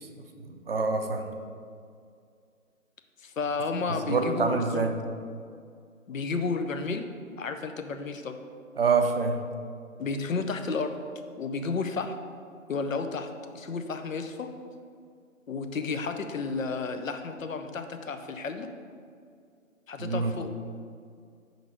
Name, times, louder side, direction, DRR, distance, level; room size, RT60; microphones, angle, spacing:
voice 1, 0.5-1.3 3.9-4.9 8.8-9.4 20.0-20.3, right 4 dB, 45° right, 6 dB, 0.5 m, -26 dB
voice 2, 3.2-4.9 6.1-7.1 7.4-8.4 10.0-11.0 11.4-12.2 12.7-14.5 15.5-18.7 19.9-20.5, left 4 dB, 70° left, 7 dB, 0.6 m, -32 dB
5.2 x 3.9 x 4.7 m, 2.3 s
figure-of-eight pair, 145°, 41 cm